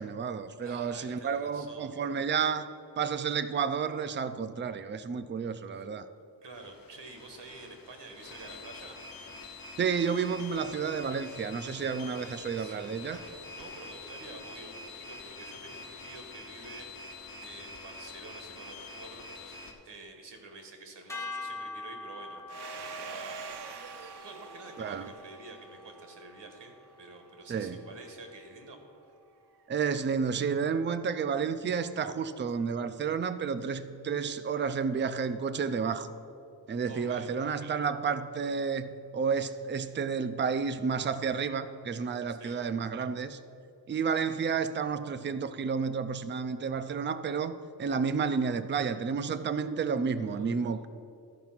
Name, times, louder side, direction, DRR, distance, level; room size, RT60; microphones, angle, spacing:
voice 1, 0.0-6.1 9.8-13.2 24.8-25.1 27.5-27.8 29.7-36.1 36.7-43.4 43.9-50.9, right 6 dB, 30° right, 11 dB, 0.4 m, -31 dB
voice 2, 0.6-1.9 5.7-5.9 6.4-9.0 12.1-12.9 13.5-16.9 17.4-23.8 24.2-28.8 36.9-37.3 42.3-42.6 50.2-50.6, right 3 dB, 90° right, 4 dB, 1.4 m, -48 dB
sound 1, 6.5-19.7, left 3 dB, 55° left, 1.2 m, -46 dB
sound 2, 21.1-27.4, left 3 dB, 5° left, 0.9 m, -44 dB
Domestic sounds home sounds, 22.5-26.9, right 5 dB, 70° right, 0.7 m, -45 dB
13.5 x 4.8 x 5.9 m, 2.5 s
wide cardioid pair, 140°, 41 cm